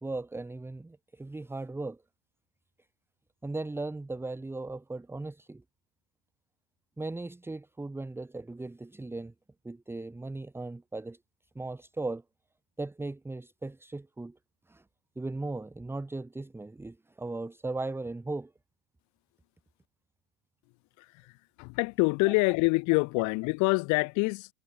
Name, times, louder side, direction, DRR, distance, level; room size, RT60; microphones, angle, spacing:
voice 1, 0.0-2.0 3.4-5.6 7.0-9.3 9.6-11.2 11.5-12.2 12.8-14.4 14.7-14.8 15.1-18.5, right 2 dB, 5° right, 1.4 m, -37 dB
voice 2, 21.6-24.5, left 28 dB, 45° left, 1.8 m, -26 dB
hypercardioid pair, 95°, 39 cm